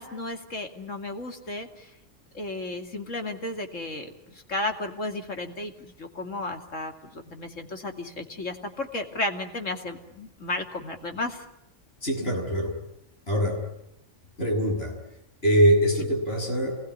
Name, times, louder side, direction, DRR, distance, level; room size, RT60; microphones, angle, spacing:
voice 1, 0.0-1.9 2.3-11.4, left 2 dB, 80° left, 4 dB, 3.0 m, -33 dB
voice 2, 12.0-12.8 13.3-13.6 14.4-14.9 15.4-16.8, equal, 50° left, 1 dB, 6.9 m, -23 dB
27.5 x 20.0 x 9.6 m, 0.84 s
omnidirectional pair, 1.3 m